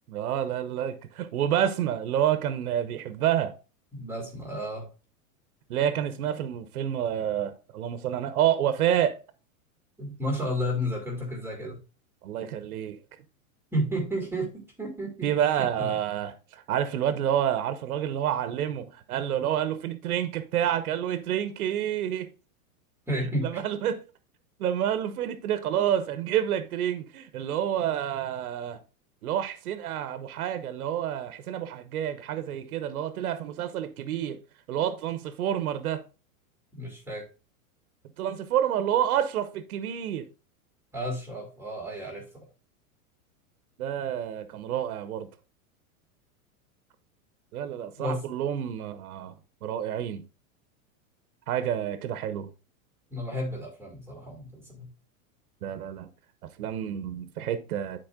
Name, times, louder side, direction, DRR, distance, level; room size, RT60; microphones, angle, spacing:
voice 1, 0.1-3.6 5.7-9.2 12.2-13.0 15.2-22.3 23.4-24.0 24.6-28.8 29.2-34.4 34.7-36.0 38.2-40.3 43.8-45.3 47.5-49.3 49.6-50.2 51.5-52.5 55.6-56.1 56.6-58.1, right 10 dB, 80° right, 1.1 m, -28 dB
voice 2, 3.9-4.9 10.0-11.8 13.7-15.3 15.6-15.9 23.1-23.8 36.7-37.2 40.9-42.4 48.0-48.2 53.1-54.9, equal, 5° right, 2.4 m, -32 dB
9.0 x 4.7 x 3.7 m
hypercardioid pair, 130°, 43 cm